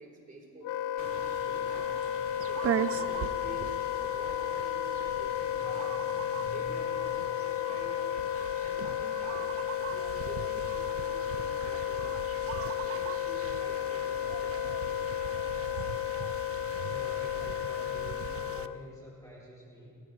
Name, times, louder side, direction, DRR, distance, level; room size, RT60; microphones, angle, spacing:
voice 1, 0.0-2.0 2.5-3.8 4.1-8.1 8.6-12.1 12.5-15.2, right 3 dB, 25° right, -1 dB, 3.8 m, -49 dB
Wind instrument woodwind instrument, 0.6-18.8, left 11 dB, 75° left, 0.5 m, -33 dB
sound 1, 1.0-18.7, right 10 dB, 50° right, 0.5 m, -40 dB
voice 2, 16.8-20.0, left 1 dB, 10° left, -4 dB, 2.3 m, -48 dB
29.0 x 14.5 x 3.2 m, 2.5 s
cardioid pair, 105°, 31 cm